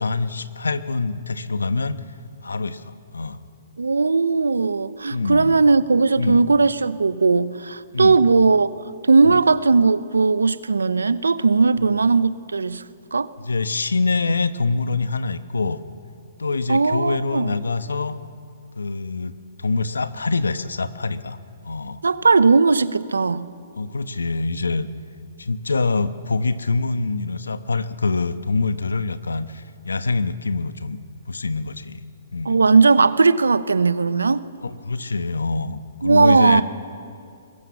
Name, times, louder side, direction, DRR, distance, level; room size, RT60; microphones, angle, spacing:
voice 1, 0.0-2.0 2.4-3.4 5.1-5.6 6.2-6.4 7.9-8.2 9.2-9.4 11.8-11.9 13.4-15.8 16.4-18.2 18.8-21.4 21.6-22.0 23.8-24.9 25.4-31.0 31.3-32.0 32.3-32.6 34.6-36.6, left 3 dB, 90° left, 12 dB, 1.1 m, -25 dB
voice 2, 3.8-8.7 9.1-12.8 13.1-13.3 16.7-17.5 22.0-23.5 32.4-34.5 36.0-36.6, right 4 dB, 90° right, 16 dB, 0.9 m, -18 dB
23.0 x 21.5 x 7.1 m, 2.3 s
hypercardioid pair, 135°, 0 cm